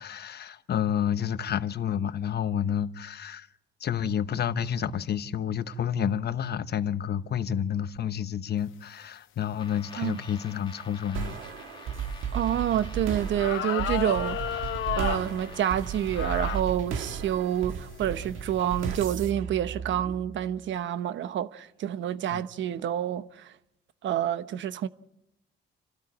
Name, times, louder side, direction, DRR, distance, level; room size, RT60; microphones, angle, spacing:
voice 1, 0.0-3.5 3.8-11.4 22.3-22.4, left 9 dB, 55° left, 1.0 m, -29 dB
sound 1, 9.6-16.6, left 3 dB, 25° left, 1.8 m, -48 dB
sound 2, 11.1-20.6, right 7 dB, 85° right, 2.0 m, -35 dB
voice 2, 12.3-23.5 24.0-24.9, right 10 dB, 70° right, 1.0 m, -28 dB
sound 3, 12.8-12.9 13.4-15.3 16.1-16.7 17.3-17.4 18.1-18.4, left 12 dB, 85° left, 0.8 m, -32 dB
29.0 x 13.0 x 9.6 m
cardioid pair, 90°, 20 cm